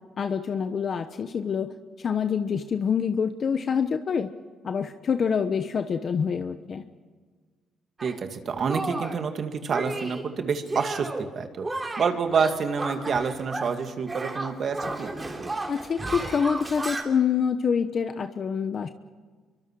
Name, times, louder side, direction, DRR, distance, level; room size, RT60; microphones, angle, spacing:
voice 1, 0.2-1.7 2.0-4.3 4.6-6.8 15.7-18.9, left 6 dB, 50° left, 8 dB, 1.0 m, -26 dB
Shatter, 8.0-8.2 8.7-9.2 9.7-10.3 10.7-11.3 11.6-13.8 14.1-17.0, right 2 dB, 25° right, 3.0 m, -33 dB
voice 2, 8.0-11.1 11.4-11.7 12.0-15.1, right 5 dB, 55° right, 6 dB, 2.4 m, -27 dB
27.0 x 23.5 x 4.8 m, 1.5 s
cardioid pair, 90°, 0 cm